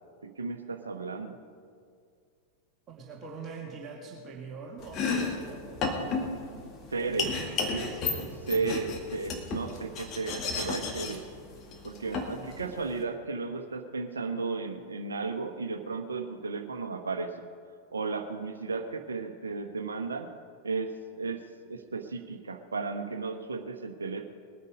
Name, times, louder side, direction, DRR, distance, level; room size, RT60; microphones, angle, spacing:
voice 1, 0.2-1.4 6.9-7.3 7.7-11.2 11.8-17.3 17.9-20.3 20.6-24.3, right 4 dB, 75° right, 6 dB, 1.1 m, -34 dB
voice 2, 2.9-8.7 12.4-12.5, right 4 dB, 30° right, -2 dB, 2.2 m, -45 dB
Domestic sounds home sounds, 4.8-13.0, left 4 dB, 35° left, 2.0 m, -34 dB
20.5 x 9.6 x 5.3 m, 2.3 s
figure-of-eight pair, 90°, 0 cm